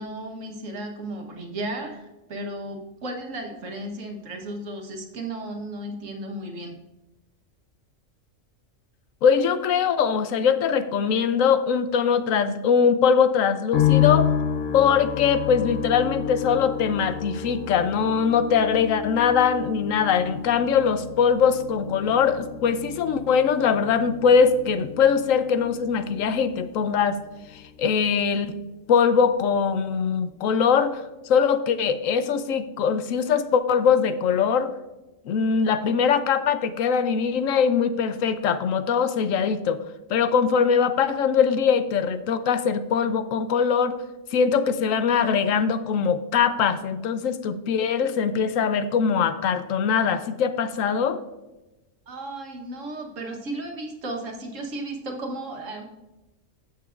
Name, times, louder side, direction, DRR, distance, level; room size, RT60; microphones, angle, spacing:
voice 1, 0.0-6.8 52.1-55.8, right 1 dB, 75° right, 2 dB, 1.5 m, -34 dB
voice 2, 9.2-14.3 14.7-27.2 27.8-28.6 28.9-31.0 31.3-34.7 35.3-39.8 40.1-44.0 44.3-51.2, left 6 dB, 80° left, 11 dB, 1.0 m, -22 dB
sound 1, 13.7-29.0 29.2-30.1, left 9 dB, 55° left, 0.9 m, -30 dB
16.0 x 6.0 x 2.4 m, 1.0 s
omnidirectional pair, 1.4 m